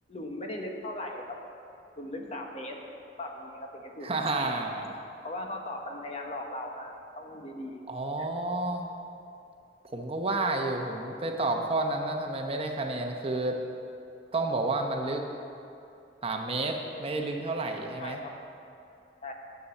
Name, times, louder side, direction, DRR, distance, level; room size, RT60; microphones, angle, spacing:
voice 1, 0.1-1.2 2.0-2.8 3.2-4.1 5.2-8.3 18.0-18.3 19.2-19.3, left 1 dB, 40° left, 2 dB, 1.1 m, -38 dB
voice 2, 4.0-4.9 7.9-8.9 9.9-13.6 14.3-15.2 16.2-18.2, right 2 dB, 35° right, 3 dB, 0.9 m, -30 dB
9.9 x 7.0 x 7.9 m, 2.7 s
head